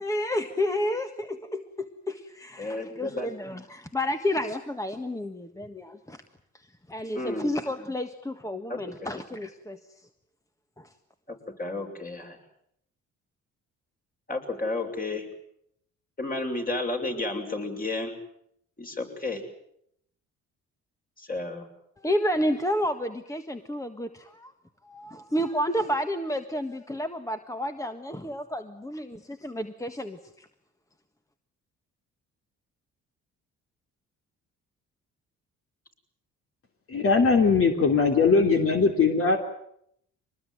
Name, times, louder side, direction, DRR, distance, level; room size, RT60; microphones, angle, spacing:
voice 1, 0.0-6.2 6.9-7.2 7.4-9.8 22.0-24.1 24.4-24.5 24.9-30.2, left 1 dB, 10° left, 7 dB, 1.6 m, -30 dB
voice 2, 2.6-3.3 7.1-7.5 8.7-9.1 11.3-12.4 14.3-15.3 16.2-18.1 18.8-19.4 21.2-21.7, left 2 dB, 30° left, 3 dB, 6.5 m, -32 dB
voice 3, 36.9-39.4, left 4 dB, 45° left, 4 dB, 3.3 m, -20 dB
24.0 x 20.0 x 9.5 m, 0.73 s
cardioid pair, 90°, 30 cm